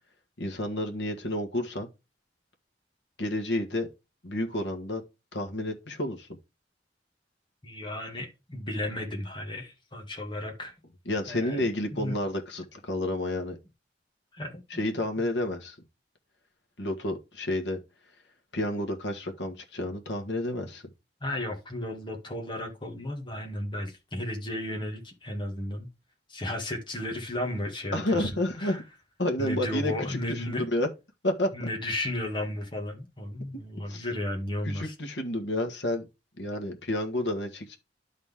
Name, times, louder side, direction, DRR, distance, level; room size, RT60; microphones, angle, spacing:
voice 1, 0.4-1.9 3.2-3.9 4.2-5.0 5.3-6.3 11.0-13.6 14.7-15.8 16.8-17.8 18.5-20.8 27.9-28.8 29.2-30.9 31.2-31.7 33.9-34.0 34.6-36.1 36.4-37.8, left 1 dB, 75° left, 1.6 m, -30 dB
voice 2, 7.6-10.7 11.3-12.2 14.3-14.6 21.2-25.9 26.3-28.3 28.6-28.8 29.4-30.6 31.5-34.9, left 1 dB, 30° left, 2.0 m, -34 dB
11.5 x 4.1 x 3.7 m
head